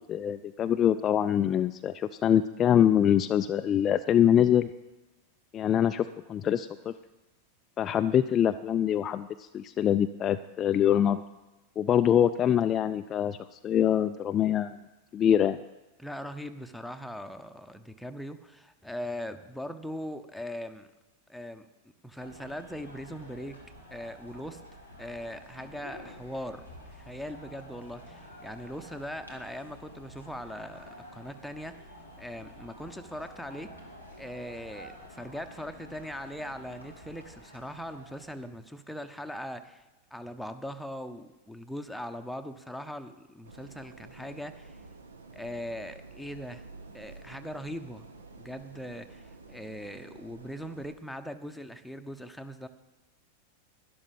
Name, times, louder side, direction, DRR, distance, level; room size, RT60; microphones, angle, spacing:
voice 1, 0.1-4.7 5.5-6.9 7.8-11.2 11.8-14.7 15.1-15.6, left 9 dB, 30° left, 9 dB, 0.4 m, -24 dB
voice 2, 16.0-20.9 21.3-21.6 22.0-23.6 23.9-24.6 25.0-26.6 26.9-31.9 32.2-33.7 34.2-39.8 40.1-44.8 45.3-46.6 46.9-48.1 48.4-52.7, equal, ahead, 7 dB, 0.8 m, -40 dB
sound 1, 22.2-38.5, equal, 90° right, 2.3 m, -49 dB
sound 2, 43.4-50.9, right 3 dB, 70° right, 1.1 m, -50 dB
12.5 x 11.0 x 5.3 m, 1.1 s
figure-of-eight pair, 90°, 0 cm